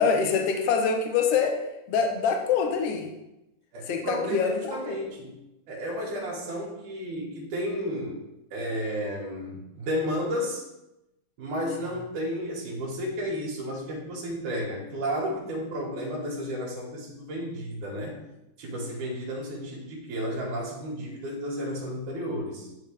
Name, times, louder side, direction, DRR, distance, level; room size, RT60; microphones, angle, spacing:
voice 1, 0.0-1.6 1.9-3.1 3.9-5.0, left 6 dB, 65° left, 3 dB, 1.6 m, -25 dB
voice 2, 3.7-5.4 5.7-8.2 8.5-10.7 11.4-18.2 18.6-22.7, equal, 80° right, -3 dB, 2.9 m, -32 dB
10.0 x 5.3 x 3.3 m, 0.91 s
omnidirectional pair, 3.5 m